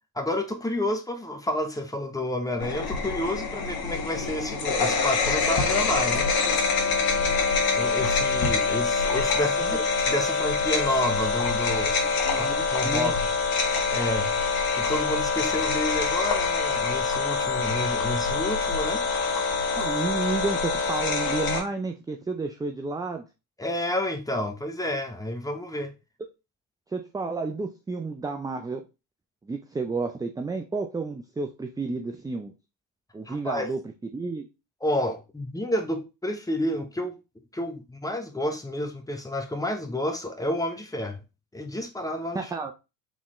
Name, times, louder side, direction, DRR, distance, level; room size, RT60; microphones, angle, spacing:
voice 1, 0.1-6.3 7.7-11.9 12.3-13.3 13.9-14.4 14.8-19.0 23.6-25.9 33.3-33.7 34.8-37.1 37.5-41.2 41.5-42.5, left 1 dB, 5° left, 1.0 m, -30 dB
sound 1, 2.6-21.6, left 4 dB, 45° left, 1.5 m, -25 dB
voice 2, 9.4-9.8 12.2-13.1 19.7-23.2 26.9-28.8 29.5-32.5 33.1-33.8 34.1-34.5 42.3-42.7, right 3 dB, 10° right, 0.4 m, -31 dB
4.1 x 3.5 x 3.1 m
supercardioid pair, 75°, 48 cm